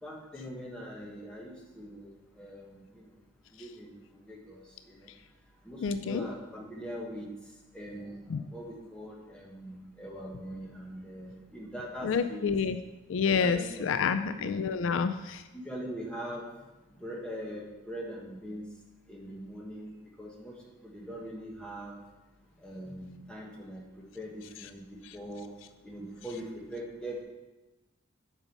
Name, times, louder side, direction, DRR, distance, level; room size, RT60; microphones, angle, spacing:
voice 1, 0.0-3.1 3.5-5.1 5.6-7.3 7.7-12.5 13.3-13.8 14.1-14.5 15.5-16.4 17.0-18.6 19.1-20.5 20.8-22.0 22.6-25.5 25.8-27.2, equal, 5° left, -3 dB, 1.4 m, -42 dB
voice 2, 5.8-6.3 8.3-8.4 12.0-12.8 13.1-15.4, left 5 dB, 65° left, 10 dB, 0.3 m, -28 dB
7.2 x 5.3 x 5.4 m, 1.0 s
head